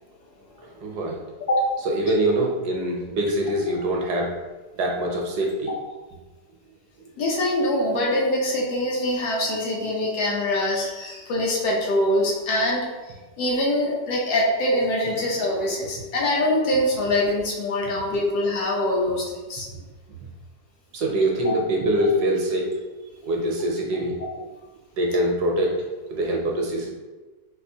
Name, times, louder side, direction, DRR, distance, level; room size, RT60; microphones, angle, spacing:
voice 1, 0.8-1.2 1.9-4.3 4.8-5.7 20.9-22.7 23.2-24.2 25.0-25.8 26.1-26.9, right 1 dB, 70° right, -1 dB, 1.1 m, -24 dB
voice 2, 7.2-12.9 13.4-19.7 21.4-21.6, left 1 dB, 65° left, -3 dB, 1.1 m, -24 dB
4.3 x 2.4 x 2.7 m, 1.2 s
omnidirectional pair, 1.9 m